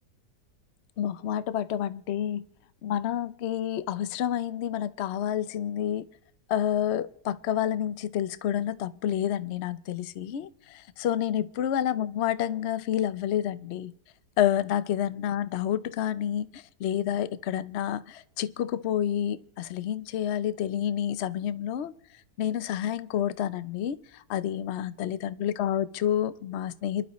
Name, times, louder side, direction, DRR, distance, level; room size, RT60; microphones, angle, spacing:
voice 1, 1.0-2.4 2.8-6.1 6.5-13.9 14.4-21.9 22.4-27.1, left 10 dB, 65° left, 0.7 m, -29 dB
29.0 x 12.0 x 3.1 m
omnidirectional pair, 1.9 m